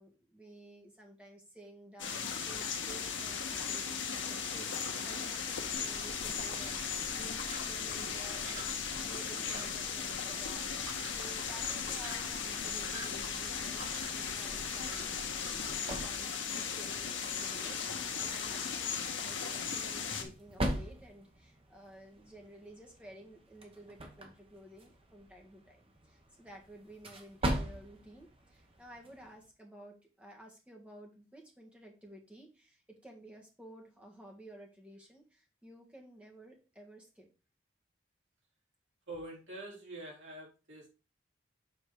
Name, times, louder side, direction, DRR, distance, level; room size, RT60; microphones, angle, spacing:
voice 1, 0.0-15.2 15.6-37.3, right 1 dB, 5° right, 0 dB, 1.5 m, -54 dB
sound 1, 2.0-20.2, left 6 dB, 65° left, 1.2 m, -37 dB
sound 2, 5.7-15.7, right 1 dB, 85° right, 2.5 m, -50 dB
sound 3, 15.1-29.5, right 1 dB, 30° right, 1.1 m, -42 dB
voice 2, 39.1-40.9, right 2 dB, 65° right, -3 dB, 3.5 m, -45 dB
7.0 x 4.1 x 4.8 m, 0.32 s
head